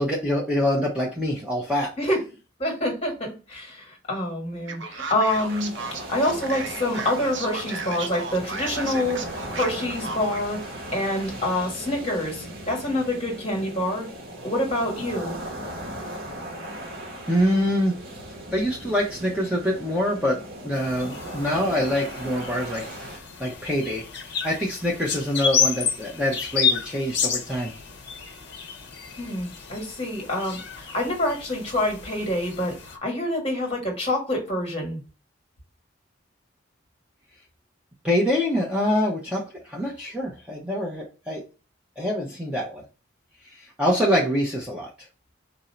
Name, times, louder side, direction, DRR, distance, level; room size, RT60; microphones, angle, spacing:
voice 1, 0.0-1.9 17.3-18.0 18.5-24.0 24.4-27.7 38.0-41.4 42.0-42.8 43.4-44.9, equal, 5° right, -4 dB, 0.7 m, -25 dB
voice 2, 2.6-5.7 6.0-10.6 10.9-14.1 14.4-15.4 29.2-35.0, left 1 dB, 30° left, 0 dB, 1.4 m, -27 dB
Male speech man speaking, 4.7-10.5, right 4 dB, 65° right, 0.6 m, -35 dB
sound 1, 5.2-23.2, right 1 dB, 80° right, 1.2 m, -38 dB
sound 2, 20.7-33.0, left 6 dB, 55° left, 0.7 m, -30 dB
4.0 x 2.7 x 4.4 m, 0.33 s
head